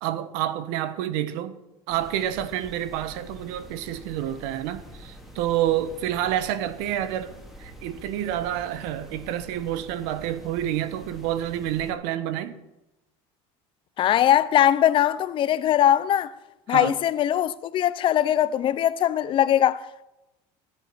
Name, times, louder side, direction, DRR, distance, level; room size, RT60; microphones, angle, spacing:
voice 1, 0.0-1.6 1.9-7.3 7.6-12.6 16.7-16.9, right 12 dB, 80° right, 1.1 m, -28 dB
sound 1, 1.9-11.9, equal, ahead, 2.6 m, -46 dB
voice 2, 14.0-16.3 16.7-20.0, left 11 dB, 40° left, 0.6 m, -21 dB
15.0 x 8.9 x 6.2 m
cardioid pair, 130°, 13 cm